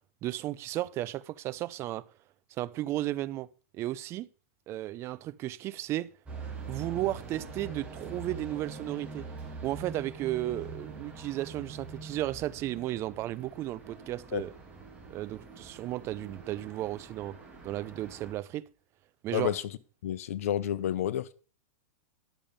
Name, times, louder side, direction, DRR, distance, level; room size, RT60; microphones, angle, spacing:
voice 1, 0.2-2.0 2.6-3.5 3.7-4.3 4.7-6.1 6.7-9.2 9.6-14.5 15.1-17.4 17.6-18.7 19.2-19.6, right 15 dB, 35° right, 0.6 m, -34 dB
sound 1, 6.3-18.3, right 4 dB, 15° right, 3.1 m, -44 dB
voice 2, 19.3-19.6 20.0-21.3, left 11 dB, 70° left, 0.8 m, -30 dB
10.5 x 7.0 x 5.2 m
hypercardioid pair, 125°, 8 cm